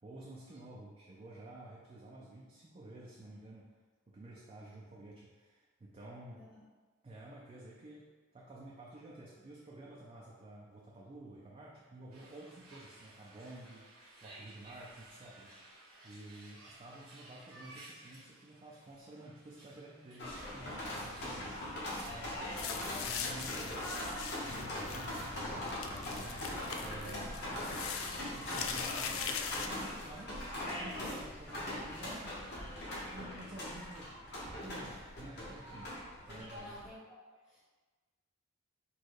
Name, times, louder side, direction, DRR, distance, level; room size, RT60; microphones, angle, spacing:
voice 1, 0.0-3.7 4.1-6.5 7.0-13.9 14.2-22.6 23.0-32.4 33.1-34.2 34.6-36.8, right 1 dB, 25° right, -4 dB, 0.4 m, -51 dB
sound 1, 12.1-21.6, right 2 dB, 75° right, 1.2 m, -56 dB
sound 2, 20.2-36.9, left 1 dB, 50° left, 1.1 m, -41 dB
sound 3, 22.6-29.7, left 7 dB, 70° left, 0.4 m, -41 dB
voice 2, 22.6-23.2 36.3-36.9 37.5-37.6, left 1 dB, 5° left, -9 dB, 0.9 m, -50 dB
4.3 x 2.3 x 4.6 m, 1.4 s
head